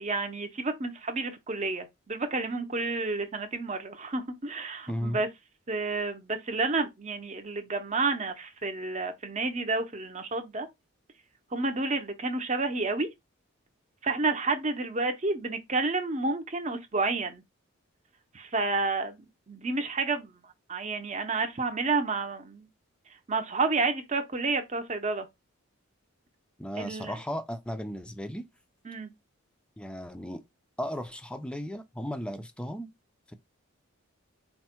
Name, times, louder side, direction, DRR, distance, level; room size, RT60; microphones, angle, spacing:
voice 1, 0.0-5.3 5.7-10.7 11.5-13.1 14.0-17.4 18.3-20.3 20.7-22.7 23.3-25.3 26.8-27.2 28.9-29.1, right 3 dB, 35° right, 0.7 m, -30 dB
voice 2, 4.9-5.2 26.6-28.5 29.8-30.4 30.8-32.9 33.3-33.4, equal, 5° left, 0.4 m, -35 dB
4.4 x 2.1 x 4.4 m
head